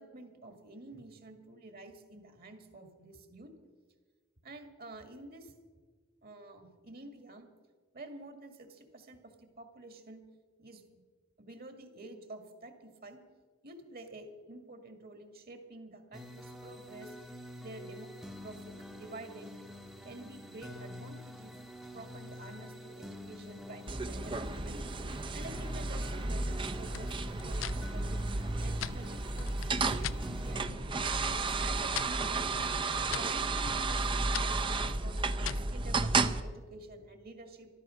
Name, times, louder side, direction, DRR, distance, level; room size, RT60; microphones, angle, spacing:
voice 1, 0.0-3.5 4.4-5.5 6.2-7.5 7.9-10.2 10.6-11.0 11.4-13.2 13.6-17.1 17.6-19.6 20.0-21.6 21.9-24.8 25.3-28.2 28.6-31.1 31.6-32.5 33.1-37.7, right 2 dB, 50° right, 7 dB, 1.9 m, -49 dB
sound 1, 16.1-30.6, left 1 dB, ahead, 0.8 m, -47 dB
sound 2, 23.9-36.4, right 3 dB, 25° right, 0.5 m, -33 dB
sound 3, 26.9-30.2 30.6-31.2 31.5-35.8, left 11 dB, 75° left, 0.4 m, -43 dB
14.0 x 12.5 x 6.3 m, 1.5 s
head